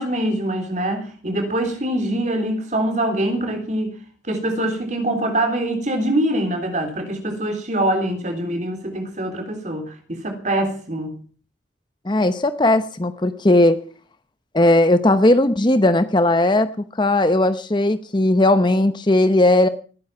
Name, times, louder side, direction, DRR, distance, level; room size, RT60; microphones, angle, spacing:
voice 1, 0.0-4.0 4.2-11.2, right 1 dB, 40° right, 5 dB, 3.6 m, -24 dB
voice 2, 12.1-13.8 14.5-16.7 17.0-19.7, left 1 dB, 25° left, 11 dB, 0.8 m, -17 dB
20.0 x 9.5 x 5.9 m, 0.41 s
head